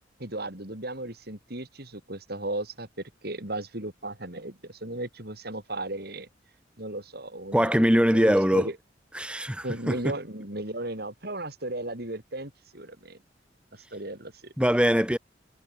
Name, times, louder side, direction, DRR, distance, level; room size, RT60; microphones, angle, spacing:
voice 1, 0.2-2.9 3.2-6.3 6.8-7.8 8.1-8.8 9.6-13.2 13.7-14.5, right 2 dB, 55° right, 4.7 m, -35 dB
voice 2, 7.5-8.7 9.1-10.1 14.6-15.2, equal, 5° right, 6.7 m, -22 dB
head